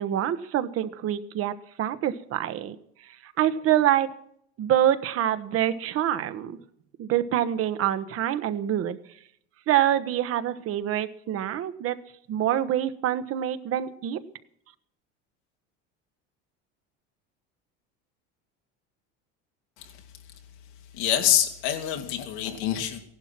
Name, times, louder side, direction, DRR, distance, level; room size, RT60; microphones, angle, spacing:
voice 1, 0.0-1.5 1.8-2.7 3.4-4.1 4.6-6.6 7.0-9.0 9.7-12.0 12.3-14.2, right 11 dB, 45° right, 12 dB, 1.1 m, -25 dB
voice 2, 20.9-23.0, left 10 dB, 90° left, 3 dB, 2.8 m, -26 dB
16.0 x 11.5 x 6.0 m, 0.70 s
supercardioid pair, 125°, 32 cm